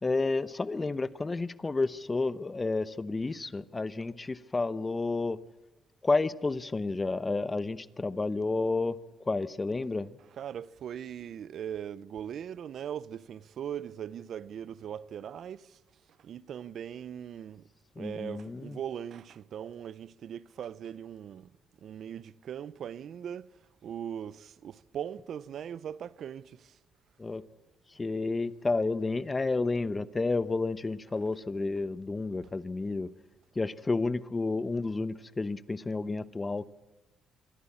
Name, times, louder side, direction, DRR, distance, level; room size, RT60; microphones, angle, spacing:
voice 1, 0.0-5.4 6.0-9.0 9.3-10.1 18.0-18.8 27.2-27.4 28.0-33.1 33.6-36.7, left 3 dB, 25° left, 0.9 m, -30 dB
voice 2, 10.2-15.8 16.2-17.7 18.0-26.8, right 9 dB, 65° right, 0.7 m, -40 dB
25.0 x 16.0 x 8.7 m
cardioid pair, 90°, 0 cm